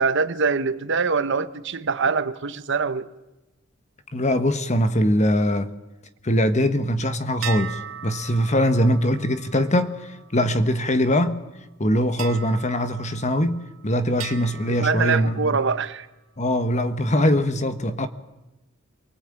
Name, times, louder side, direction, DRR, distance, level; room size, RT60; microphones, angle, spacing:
voice 1, 0.0-3.1 14.8-16.1, right 5 dB, 60° right, 1.0 m, -23 dB
voice 2, 4.1-5.7 6.2-11.4 11.8-15.6 16.4-18.1, equal, 35° left, 1.2 m, -22 dB
sound 1, 7.4-11.1 12.2-13.7 14.2-15.9, right 8 dB, 85° right, 1.7 m, -39 dB
24.5 x 19.0 x 8.9 m
head